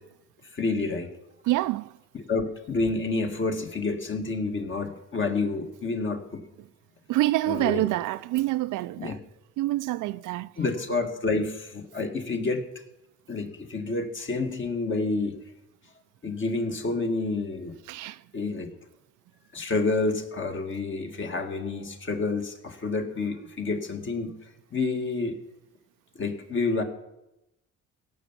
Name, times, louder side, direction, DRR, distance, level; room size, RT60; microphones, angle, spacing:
voice 1, 0.5-1.1 2.1-6.4 7.5-7.8 9.0-9.1 10.6-12.6 13.3-15.4 16.2-17.8 18.3-18.7 19.5-24.3 24.7-25.4 26.2-26.8, left 3 dB, 40° left, 2.0 m, -29 dB
voice 2, 1.4-1.9 7.1-9.2 9.6-10.5 17.9-18.2, right 17 dB, 85° right, 0.5 m, -26 dB
16.5 x 7.0 x 7.4 m
cardioid pair, 90°, 30 cm